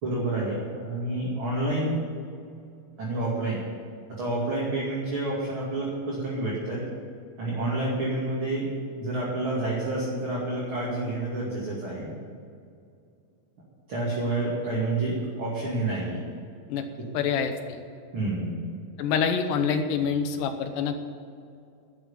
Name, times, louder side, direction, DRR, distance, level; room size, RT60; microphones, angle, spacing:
voice 1, 0.0-2.0 3.0-3.6 4.2-6.8 7.4-12.1 13.9-16.2 17.0-17.1 18.1-18.7, right 2 dB, 40° right, -6 dB, 2.8 m, -29 dB
voice 2, 17.1-17.8 19.0-21.0, left 6 dB, 70° left, 6 dB, 2.5 m, -26 dB
12.0 x 7.6 x 8.8 m, 2.4 s
omnidirectional pair, 4.3 m